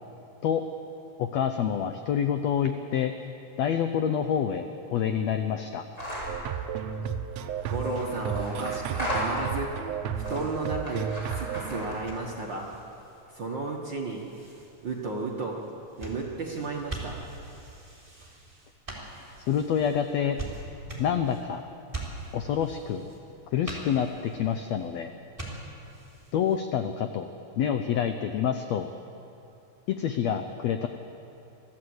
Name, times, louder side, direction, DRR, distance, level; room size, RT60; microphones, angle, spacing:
voice 1, 1.2-3.1 3.6-4.6 4.9-5.8 19.5-20.4 21.0-21.6 22.3-23.0 23.5-25.1 26.3-27.3 27.6-28.9 29.9-30.9, left 8 dB, 85° left, 8 dB, 1.5 m, -27 dB
sound 1, 6.0-6.4 7.5-9.7 10.2-12.2, equal, 20° left, 5.9 m, -35 dB
sound 2, 6.3-11.8, right 8 dB, 80° right, 1.5 m, -33 dB
voice 2, 7.7-9.7 10.1-12.7 13.3-14.2 14.8-15.6 16.0-17.2, right 3 dB, 55° right, -1 dB, 1.3 m, -33 dB
sound 3, 9.8-26.6, right 2 dB, 10° right, 3.0 m, -44 dB
23.5 x 14.5 x 7.9 m, 2.8 s
omnidirectional pair, 3.9 m